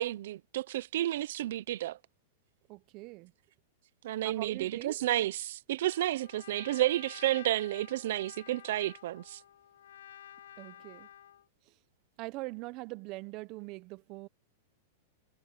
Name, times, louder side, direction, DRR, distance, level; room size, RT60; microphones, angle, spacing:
voice 1, 0.0-2.0 4.0-9.4, right 14 dB, 70° right, 0.8 m, -31 dB
voice 2, 2.7-3.3 4.2-5.0 10.6-11.1 12.2-14.3, right 22 dB, 45° right, 0.9 m, -42 dB
Trumpet, 5.8-11.5, left 10 dB, 85° left, 3.9 m, -52 dB
hypercardioid pair, 135°, 0 cm